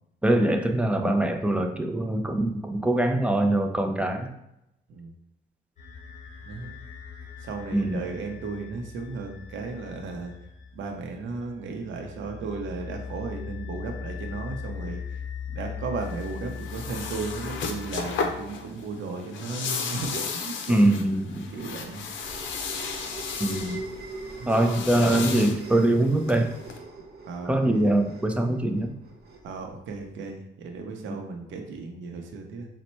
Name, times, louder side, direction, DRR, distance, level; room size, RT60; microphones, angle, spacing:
voice 1, 0.2-4.3 7.7-8.1 20.7-21.5 23.4-23.8 24.5-26.5 27.4-28.9 31.1-31.2, right 1 dB, 5° right, 5 dB, 0.5 m, -23 dB
sound 1, 5.8-18.9, left 6 dB, 35° left, 1.2 m, -40 dB
voice 2, 7.4-10.3 10.7-15.0 15.5-20.8 21.5-22.0 24.4-24.5 27.3-28.0 29.4-32.7, right 4 dB, 75° right, 3 dB, 0.7 m, -35 dB
sound 2, 16.0-26.8, left 5 dB, 75° left, 0.6 m, -35 dB
sound 3, 21.3-30.1, right 3 dB, 55° right, 0.9 m, -42 dB
4.1 x 2.1 x 4.4 m, 0.84 s
cardioid pair, 90°, 20 cm